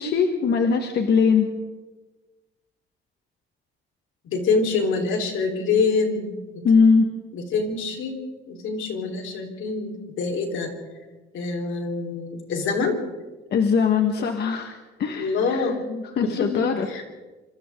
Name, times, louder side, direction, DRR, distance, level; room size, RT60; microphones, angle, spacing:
voice 1, 0.0-1.5 6.6-7.1 13.5-17.0, left 5 dB, 55° left, 4 dB, 1.6 m, -21 dB
voice 2, 4.3-6.4 7.3-8.2 8.5-10.7 11.3-13.0 15.2-15.8 16.2-17.0, left 4 dB, 80° left, 2 dB, 4.2 m, -25 dB
27.5 x 25.5 x 3.8 m, 1.2 s
cardioid pair, 150°, 20 cm